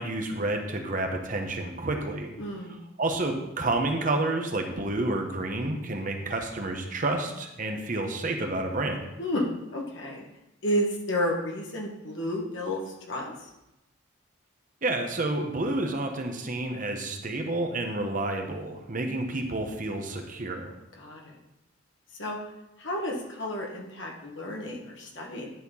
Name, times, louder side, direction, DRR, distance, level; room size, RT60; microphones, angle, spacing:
voice 1, 0.0-2.4 3.0-9.0 14.8-20.7, right 2 dB, 40° right, 3 dB, 1.0 m, -29 dB
voice 2, 2.4-2.8 9.2-10.2 10.6-12.8 13.1-13.3 20.9-21.4 22.2-22.4 22.8-25.5, equal, 65° left, -1 dB, 1.7 m, -31 dB
11.0 x 4.4 x 5.5 m, 0.90 s
head